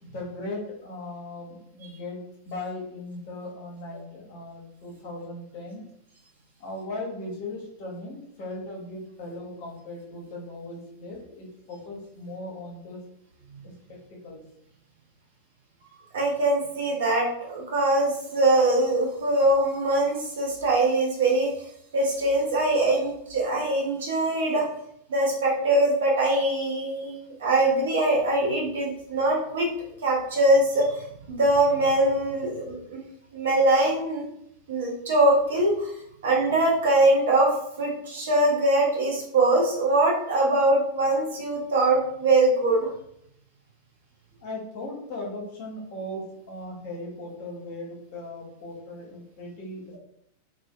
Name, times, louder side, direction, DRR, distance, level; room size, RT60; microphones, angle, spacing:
voice 1, 0.0-5.8 6.6-13.0 14.2-14.4 44.4-50.0, left 2 dB, 50° left, -2 dB, 0.8 m, -38 dB
voice 2, 16.1-21.5 21.9-24.6 25.1-29.7 30.0-33.0 33.3-34.2 34.7-35.9 36.2-42.9, right 2 dB, 60° right, -1 dB, 0.7 m, -22 dB
2.5 x 2.1 x 2.3 m, 0.73 s
figure-of-eight pair, 90°, 0 cm